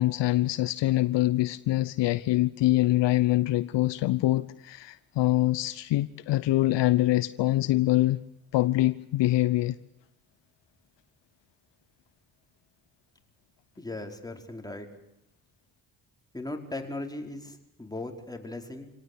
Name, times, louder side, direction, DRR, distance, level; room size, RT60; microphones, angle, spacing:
voice 1, 0.0-8.2 8.5-9.7, left 16 dB, 65° left, 0.9 m, -24 dB
voice 2, 13.8-14.9 16.3-18.9, left 2 dB, 10° left, 5.1 m, -38 dB
27.5 x 18.5 x 8.4 m
hypercardioid pair, 50°, 46 cm